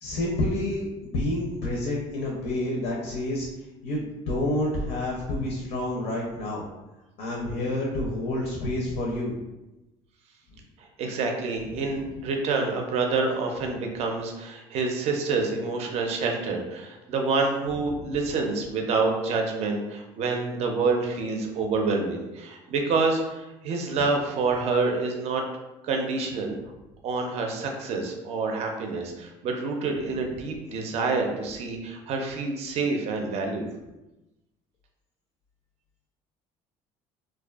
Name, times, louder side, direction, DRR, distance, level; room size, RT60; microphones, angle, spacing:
voice 1, 0.0-3.5 3.8-6.6 7.2-9.3, left 1 dB, 70° left, -2 dB, 0.5 m, -28 dB
voice 2, 11.0-25.4 25.8-26.5 27.0-33.7, right 4 dB, 55° right, 2 dB, 0.5 m, -27 dB
2.5 x 2.2 x 2.3 m, 1.0 s
cardioid pair, 115°, 13 cm